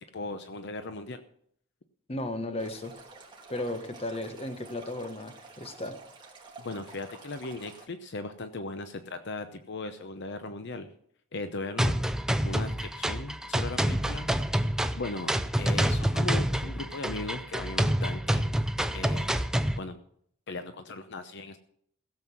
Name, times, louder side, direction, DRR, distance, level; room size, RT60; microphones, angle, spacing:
voice 1, 0.1-1.2 6.6-10.9 11.3-11.9 12.4-14.3 14.9-15.3 15.6-18.5 18.9-19.5 19.8-20.0 20.5-21.6, left 3 dB, 60° left, 9 dB, 0.8 m, -38 dB
voice 2, 2.1-3.0 3.5-6.0, left 1 dB, 30° left, 8 dB, 1.4 m, -35 dB
Stream, 2.6-7.8, right 3 dB, 25° right, 2.2 m, -50 dB
sound 1, 11.8-19.8, equal, 5° right, 0.6 m, -27 dB
16.5 x 7.7 x 6.1 m, 0.65 s
head